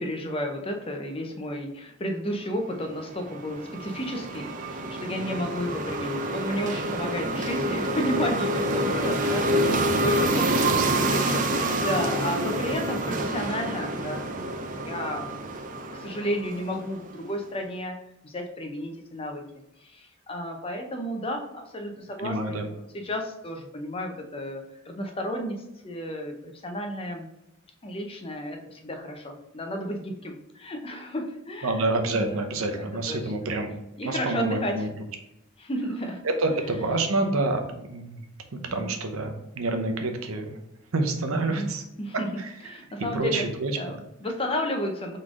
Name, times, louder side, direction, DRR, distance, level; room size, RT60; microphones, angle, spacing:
voice 1, 0.0-14.2 14.9-15.3 15.9-19.4 19.8-27.3 27.8-32.5 32.8-33.5 34.0-34.9 35.6-36.6 38.5-39.0 41.3-41.7 42.0-42.3 42.7-43.5 43.7-45.2, equal, 25° left, 4 dB, 0.6 m, -32 dB
sound 1, 2.8-17.2, right 1 dB, 40° right, 0.5 m, -27 dB
voice 2, 10.4-10.8 22.2-22.7 31.6-33.7 34.0-34.9 36.2-38.2 38.5-40.6 40.9-41.8 42.4-42.5 43.1-43.9, right 2 dB, 85° right, 5 dB, 0.7 m, -28 dB
4.0 x 3.2 x 3.6 m, 0.87 s
head